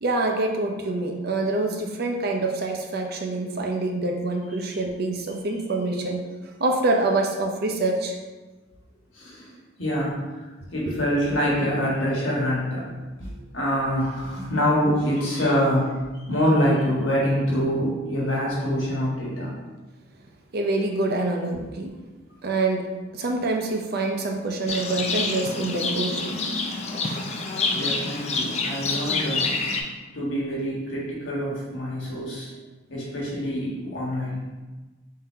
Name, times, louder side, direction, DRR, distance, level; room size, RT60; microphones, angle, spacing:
voice 1, 0.0-6.3 6.6-8.2 20.5-21.9 22.4-26.4 26.6-27.3, right 2 dB, 50° right, 2 dB, 0.5 m, -26 dB
voice 2, 9.1-9.5 9.8-10.4 10.7-12.9 13.2-19.6 27.6-29.5 30.1-32.5 32.9-34.4, equal, 75° left, -5 dB, 1.4 m, -25 dB
Livestock farm animals working animals, 24.7-29.8, left 3 dB, 35° left, 0.4 m, -27 dB
3.7 x 2.8 x 4.4 m, 1.2 s
head